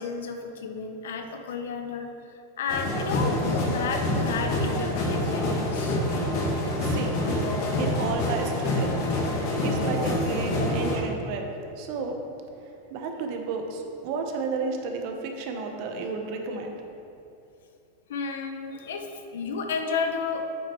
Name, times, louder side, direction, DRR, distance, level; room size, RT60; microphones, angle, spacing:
voice 1, 0.0-6.0 18.1-20.5, left 5 dB, 85° left, 6 dB, 0.8 m, -32 dB
sound 1, 2.7-11.0, left 1 dB, 55° left, 1.9 m, -26 dB
voice 2, 6.7-7.2 7.8-9.0 9.3-12.2 12.6-16.8, right 4 dB, 55° right, 3 dB, 1.1 m, -32 dB
8.6 x 6.1 x 4.6 m, 2.7 s
supercardioid pair, 140°, 0 cm